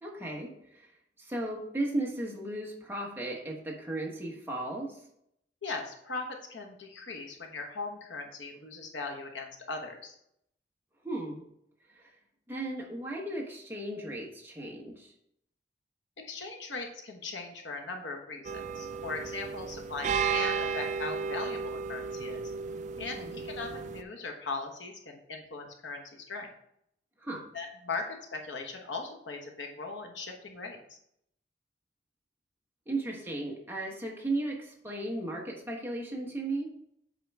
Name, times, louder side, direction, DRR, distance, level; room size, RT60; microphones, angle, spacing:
voice 1, 0.0-0.9 1.2-5.0 11.0-11.4 12.5-15.1 23.0-23.4 27.2-27.5 32.9-36.7, right 2 dB, 10° right, -1 dB, 1.0 m, -35 dB
voice 2, 5.6-10.1 16.2-22.5 23.0-26.5 27.5-31.0, left 3 dB, 85° left, 2 dB, 1.1 m, -39 dB
sound 1, 18.4-24.0, right 6 dB, 40° right, 0.3 m, -34 dB
7.6 x 4.4 x 3.4 m, 0.74 s
head